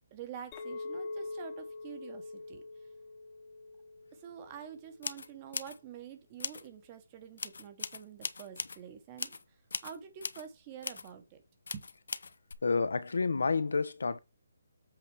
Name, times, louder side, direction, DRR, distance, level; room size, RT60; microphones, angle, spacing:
voice 1, 0.1-2.6 4.1-11.4 11.7-11.9, right 8 dB, 15° right, 1.0 m, -47 dB
Chink clink, 0.5-5.0, left 3 dB, 15° left, 1.1 m, -44 dB
sound 1, 4.3-4.4 5.0-5.8 6.4-6.7 7.4-8.8 9.2-9.4 9.7-10.5 10.8-11.1 11.7-12.5, left 4 dB, 65° left, 0.6 m, -39 dB
voice 2, 12.6-14.2, left 4 dB, 80° left, 1.1 m, -29 dB
8.0 x 4.2 x 4.8 m
hypercardioid pair, 180°, 0 cm